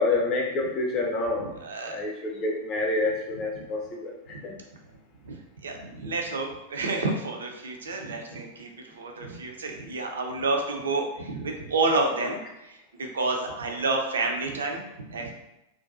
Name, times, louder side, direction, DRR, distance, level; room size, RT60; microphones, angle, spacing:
voice 1, 0.0-4.6, left 2 dB, 35° left, 0 dB, 0.6 m, -28 dB
voice 2, 1.6-2.0 4.3-4.4 5.2-15.3, right 3 dB, 70° right, 2 dB, 0.4 m, -30 dB
2.5 x 2.2 x 2.4 m, 0.88 s
figure-of-eight pair, 90°, 0 cm